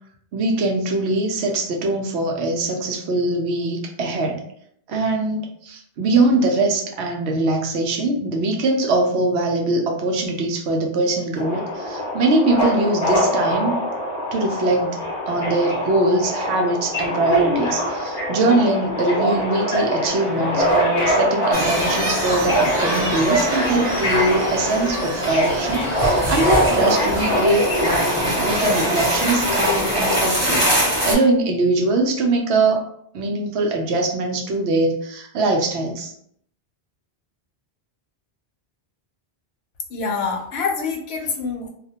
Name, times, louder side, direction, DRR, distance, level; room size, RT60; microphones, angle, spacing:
voice 1, 0.3-4.4 4.9-13.8 14.3-15.0 15.3-32.9 33.1-36.1, right 2 dB, 85° right, 2 dB, 0.8 m, -22 dB
Subway metro underground, 11.4-30.2, equal, 40° left, 0.7 m, -23 dB
sound 1, 20.1-28.2, right 3 dB, 60° right, 0.6 m, -37 dB
sound 2, 21.5-31.1, equal, 25° right, 0.8 m, -24 dB
voice 2, 39.9-41.7, left 5 dB, 75° left, 1 dB, 0.8 m, -26 dB
2.3 x 2.1 x 2.7 m, 0.67 s
omnidirectional pair, 1.1 m